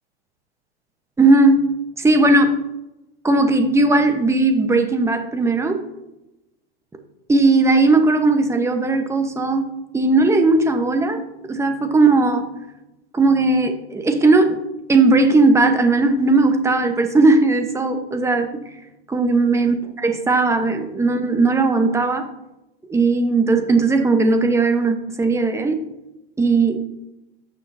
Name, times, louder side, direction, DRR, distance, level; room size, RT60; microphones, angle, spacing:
voice 1, 1.2-1.6 2.0-2.6 3.2-5.8 7.3-9.7 9.9-11.2 11.5-12.4 13.1-14.6 14.9-18.5 19.1-22.3 22.9-25.8 26.4-26.8, right 3 dB, 10° right, 5 dB, 1.0 m, -17 dB
17.0 x 6.6 x 2.7 m, 0.93 s
hypercardioid pair, 120°, 33 cm